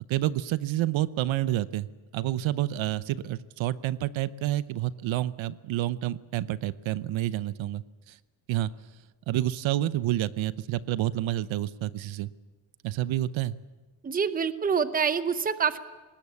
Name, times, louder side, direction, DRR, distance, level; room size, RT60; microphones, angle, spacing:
voice 1, 0.1-1.9 2.1-8.2 8.5-8.7 9.3-12.3 12.8-13.5, right 14 dB, 80° right, 16 dB, 0.8 m, -29 dB
voice 2, 14.0-15.8, right 6 dB, 20° right, 12 dB, 0.7 m, -26 dB
21.0 x 19.0 x 8.4 m, 1.3 s
cardioid pair, 170°, 45 cm